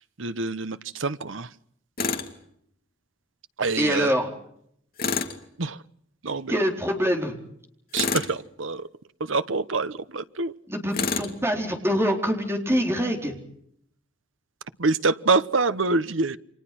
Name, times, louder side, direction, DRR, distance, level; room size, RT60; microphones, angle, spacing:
voice 1, 0.2-1.5 3.6-4.1 5.6-5.8 6.2-6.6 7.9-8.9 9.3-10.5 14.8-16.4, right 3 dB, 85° right, 13 dB, 1.1 m, -25 dB
Tools, 2.0-2.3 5.0-5.4 7.9-8.4 10.9-11.3, left 5 dB, 50° left, 2.4 m, -27 dB
voice 2, 3.8-4.3 6.5-7.3 10.7-13.4, equal, 15° right, 3 dB, 4.1 m, -25 dB
29.5 x 25.0 x 6.1 m, 0.70 s
head